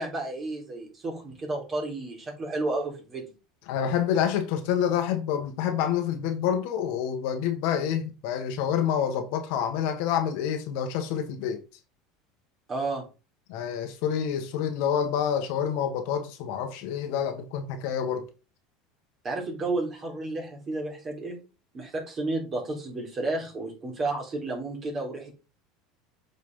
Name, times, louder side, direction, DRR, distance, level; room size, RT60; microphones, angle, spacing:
voice 1, 0.0-3.3 12.7-13.0 19.2-21.4 21.7-25.3, right 2 dB, 30° right, 3.8 m, -32 dB
voice 2, 3.7-11.6 13.5-18.3, left 8 dB, 65° left, 1.5 m, -27 dB
7.9 x 5.4 x 3.8 m
supercardioid pair, 130°, 0 cm